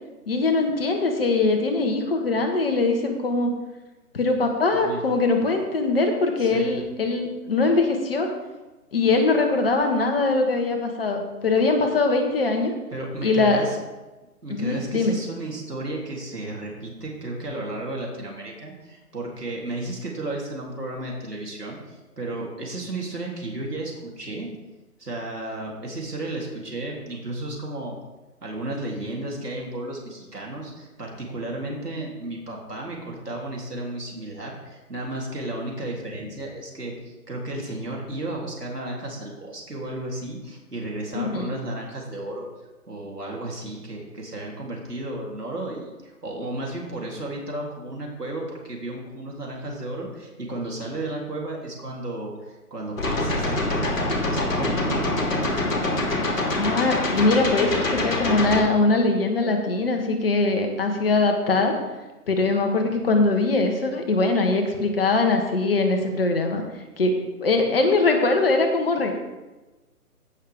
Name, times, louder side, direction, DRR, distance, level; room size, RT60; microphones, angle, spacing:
voice 1, 0.3-3.5 4.1-8.3 8.9-12.7 13.2-13.6 14.5-15.2 41.1-41.5 56.6-61.7 62.3-66.6 67.0-67.1 67.4-69.1, left 3 dB, 40° left, 4 dB, 1.6 m, -22 dB
voice 2, 12.9-13.8 14.4-24.5 25.0-28.0 28.4-42.5 42.9-52.3 52.7-55.2, right 1 dB, 80° right, -2 dB, 3.8 m, -33 dB
sound 1, 53.0-58.6, left 2 dB, 60° left, 2.7 m, -25 dB
16.5 x 6.6 x 3.8 m, 1.1 s
figure-of-eight pair, 145°, 46 cm